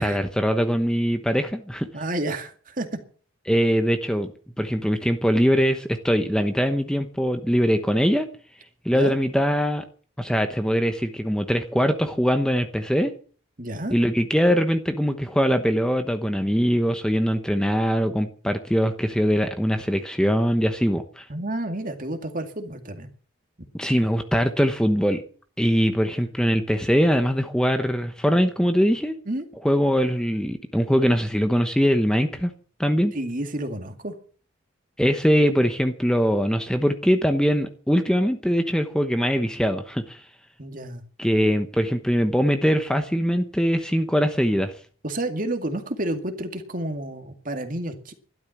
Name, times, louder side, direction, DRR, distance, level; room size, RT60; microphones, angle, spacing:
voice 1, 0.0-1.9 3.5-4.3 4.6-8.3 8.8-9.8 10.2-13.1 13.9-21.3 23.7-25.2 25.6-29.2 29.6-32.5 32.8-33.1 35.0-40.3 41.2-44.8, equal, 5° left, 7 dB, 1.0 m, -22 dB
voice 2, 1.9-2.9 8.9-9.2 13.6-14.0 21.3-23.1 26.1-26.3 29.3-29.5 33.1-34.1 40.6-41.0 45.0-48.1, right 1 dB, 40° right, 7 dB, 2.2 m, -30 dB
13.5 x 12.0 x 7.2 m, 0.42 s
head